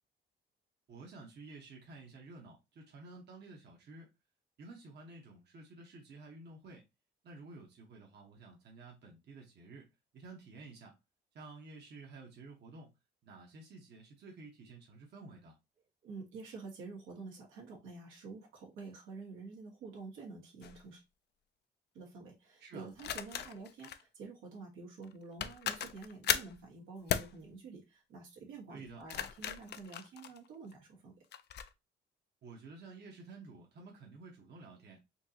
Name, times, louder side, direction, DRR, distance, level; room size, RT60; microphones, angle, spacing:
voice 1, 0.9-4.1 4.6-6.8 7.2-11.0 11.3-12.9 13.2-15.6 22.6-22.9 28.7-29.0 32.4-35.0, right 3 dB, 60° right, 1.2 m, -52 dB
voice 2, 16.0-21.0 21.9-31.1, right 4 dB, 90° right, 1.7 m, -49 dB
sound 1, 20.6-20.8 23.0-24.0 25.0-25.1 25.4-26.6 27.1-27.3 28.9-30.7 31.3-31.7, left 9 dB, 55° left, 0.5 m, -36 dB
4.4 x 2.9 x 2.8 m
cardioid pair, 90°, 20 cm